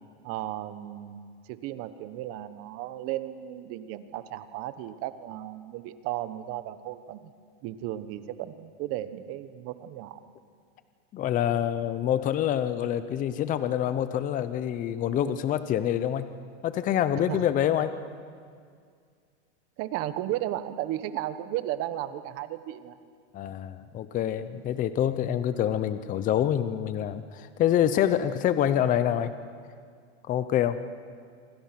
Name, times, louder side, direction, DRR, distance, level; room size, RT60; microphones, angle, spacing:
voice 1, 0.2-7.3 7.6-10.2 17.3-17.5 19.8-23.0 24.5-24.6, right 13 dB, 40° right, 13 dB, 1.2 m, -35 dB
voice 2, 11.1-16.3 16.6-17.9 23.3-29.3 30.3-30.8, left 10 dB, 25° left, 12 dB, 0.8 m, -26 dB
28.0 x 25.0 x 6.0 m, 2.1 s
supercardioid pair, 150°, 35 cm